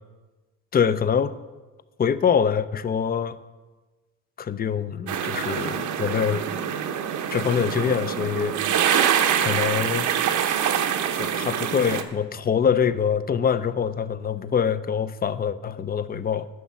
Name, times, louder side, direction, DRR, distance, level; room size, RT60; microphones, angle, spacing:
voice 1, 0.7-1.3 2.0-3.4 4.4-6.4 7.3-8.8 9.4-10.1 11.1-16.5, left 7 dB, 30° left, 15 dB, 0.5 m, -24 dB
sound 1, 5.1-12.0, right 8 dB, 75° right, 0.9 m, -25 dB
9.5 x 6.3 x 7.0 m, 1.2 s
cardioid pair, 90°, 30 cm